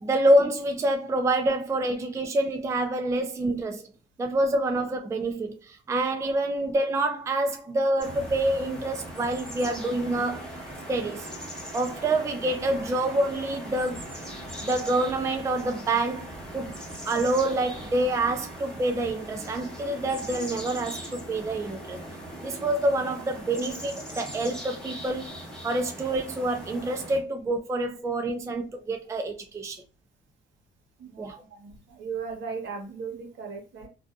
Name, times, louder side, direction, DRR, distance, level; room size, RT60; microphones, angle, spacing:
voice 1, 0.0-3.9 4.2-10.5 10.9-11.3 11.7-14.1 14.6-16.8 17.1-22.0 22.4-25.3 25.6-29.8 31.2-31.3, right 1 dB, 15° right, 0.3 m, -27 dB
sound 1, 8.0-27.2, equal, 5° left, 1.1 m, -40 dB
voice 2, 31.0-33.9, right 5 dB, 70° right, 1.0 m, -37 dB
2.5 x 2.3 x 2.4 m
cardioid pair, 90°, 20 cm